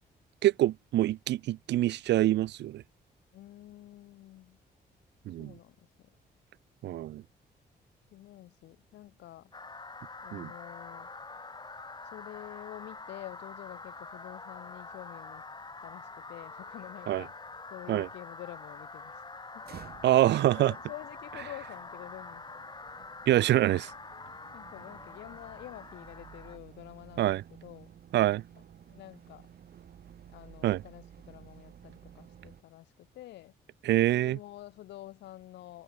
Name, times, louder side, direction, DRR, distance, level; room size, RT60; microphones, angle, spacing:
voice 1, 0.4-2.8 5.3-5.5 6.8-7.2 10.3-10.5 17.1-17.2 17.9-18.1 20.0-20.7 23.3-23.9 27.2-27.4 28.1-28.4 30.6-30.8 33.8-34.4, right 14 dB, 85° right, 1.2 m, -25 dB
voice 2, 3.3-4.6 5.4-6.1 8.1-9.5 10.2-11.1 12.0-15.4 15.8-17.3 17.7-19.2 19.5-19.8 20.2-22.7 24.5-27.9 28.9-29.5 30.3-33.5 34.1-35.8, left 14 dB, 90° left, 3.8 m, -48 dB
sound 1, 9.5-26.6, left 3 dB, 25° left, 3.6 m, -46 dB
sound 2, 19.6-32.6, right 9 dB, 65° right, 5.4 m, -54 dB
cardioid pair, 85°, 18 cm